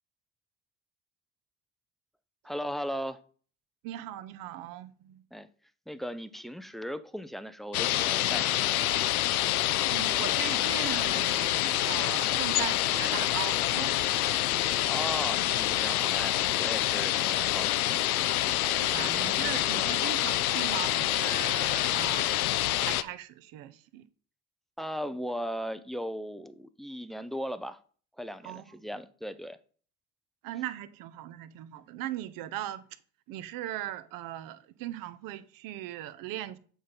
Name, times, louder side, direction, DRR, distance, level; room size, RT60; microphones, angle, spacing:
voice 1, 2.4-3.2 5.3-5.5 5.9-8.8 14.9-18.0 19.4-19.6 24.8-27.8 28.2-29.6, equal, ahead, 0.4 m, -37 dB
voice 2, 3.8-5.2 9.9-13.9 18.6-22.4 22.8-24.0 28.4-28.6 30.4-32.8 33.3-36.6, right 13 dB, 50° right, 0.8 m, -39 dB
sound 1, 7.7-23.0, left 14 dB, 80° left, 0.6 m, -27 dB
7.8 x 4.0 x 5.1 m
hypercardioid pair, 75°, 43 cm